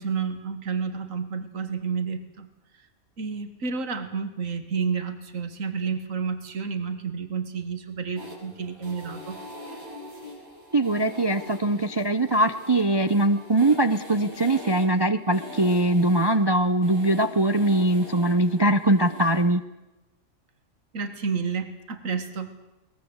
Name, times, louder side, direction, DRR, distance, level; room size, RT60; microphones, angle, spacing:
voice 1, 0.0-2.5 3.2-9.4 20.9-22.5, right 5 dB, 65° right, 9 dB, 2.2 m, -30 dB
sound 1, 8.2-19.4, left 1 dB, 80° right, 6.9 m, -42 dB
voice 2, 10.7-19.6, right 1 dB, 25° right, 10 dB, 0.6 m, -22 dB
22.5 x 20.5 x 8.1 m, 1.0 s
omnidirectional pair, 1.5 m